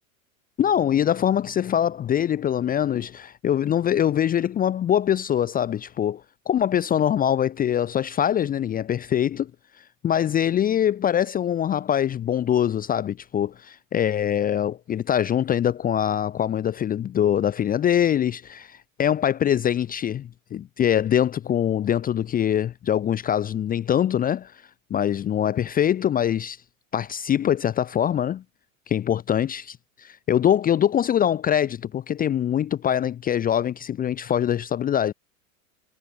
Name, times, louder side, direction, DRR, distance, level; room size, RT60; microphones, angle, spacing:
voice 1, 0.6-6.2 6.5-9.5 10.0-24.5 24.9-26.6 26.9-28.4 28.9-35.1, left 10 dB, 20° left, 0.8 m, -23 dB
hypercardioid pair, 110°, 42 cm